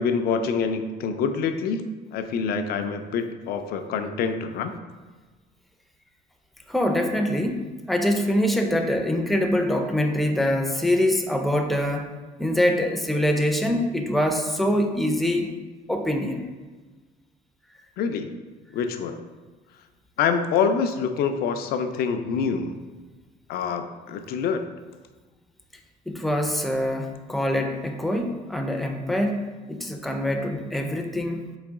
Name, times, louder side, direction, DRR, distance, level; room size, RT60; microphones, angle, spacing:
voice 1, 0.0-4.7 18.0-18.4 18.7-19.2 20.2-22.8 23.5-24.7, left 6 dB, 65° left, 7 dB, 0.4 m, -26 dB
voice 2, 6.7-7.6 7.9-15.5 15.9-16.4 26.1-29.4 29.7-31.4, left 1 dB, ahead, 4 dB, 0.4 m, -24 dB
4.0 x 2.9 x 3.5 m, 1.3 s
cardioid pair, 110°, 17 cm